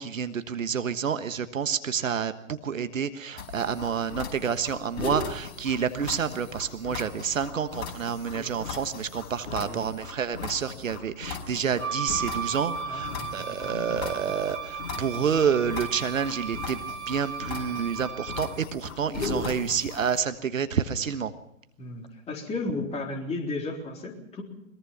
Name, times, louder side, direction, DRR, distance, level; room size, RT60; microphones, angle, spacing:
voice 1, 0.0-21.3, right 7 dB, 70° right, 11 dB, 1.5 m, -29 dB
sound 1, 3.4-20.2, left 5 dB, 50° left, 5.1 m, -38 dB
voice 2, 9.5-9.9 12.9-14.0 19.2-19.8 21.8-24.4, left 2 dB, 15° left, 1 dB, 3.8 m, -35 dB
Wind instrument woodwind instrument, 11.8-18.6, right 6 dB, 85° right, 7.3 m, -36 dB
22.5 x 22.0 x 5.8 m, 0.77 s
figure-of-eight pair, 120°, 41 cm